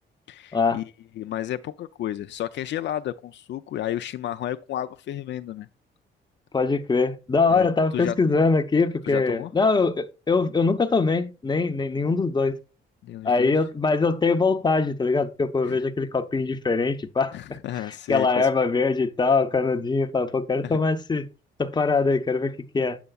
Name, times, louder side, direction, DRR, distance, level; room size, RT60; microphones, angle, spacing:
voice 1, 0.3-5.7 7.5-7.7 7.9-8.2 9.1-9.5 13.0-13.6 15.6-15.8 17.3-18.5 20.6-20.8, left 12 dB, 65° left, 0.4 m, -32 dB
voice 2, 6.5-12.6 13.2-17.3 18.1-21.3 21.6-23.0, left 4 dB, 20° left, 0.8 m, -22 dB
7.7 x 6.8 x 2.3 m
cardioid pair, 90°, 20 cm